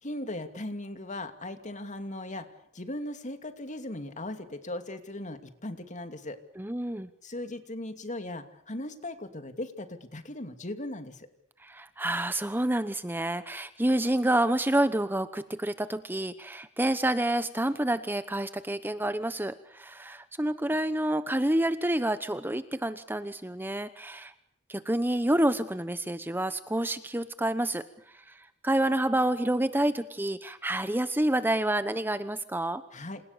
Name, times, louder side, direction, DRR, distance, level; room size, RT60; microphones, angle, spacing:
voice 1, 0.0-2.5 2.7-6.4 7.2-11.3 32.9-33.2, left 1 dB, 35° left, 8 dB, 2.7 m, -38 dB
voice 2, 6.6-7.1 11.6-24.3 24.7-27.8 28.3-32.8, right 1 dB, 10° right, 12 dB, 1.0 m, -28 dB
28.5 x 28.0 x 6.9 m, 0.71 s
head